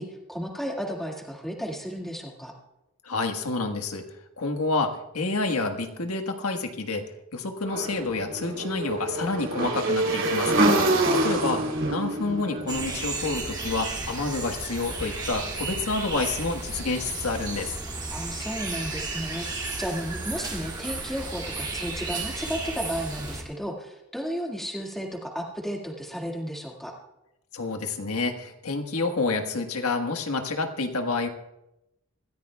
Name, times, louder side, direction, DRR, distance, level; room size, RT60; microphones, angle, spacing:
voice 1, 0.0-2.5 11.0-11.6 18.1-26.9, equal, ahead, -1 dB, 2.0 m, -34 dB
voice 2, 3.0-4.0 4.4-7.1 7.3-10.6 11.1-11.6 11.9-17.7 27.5-31.3, left 3 dB, 90° left, 5 dB, 1.5 m, -28 dB
Motorcycle / Engine, 7.6-13.8, right 2 dB, 55° right, 3.4 m, -26 dB
sound 1, 12.7-23.4, right 3 dB, 20° right, 2.3 m, -33 dB
25.5 x 14.0 x 2.3 m, 0.90 s
head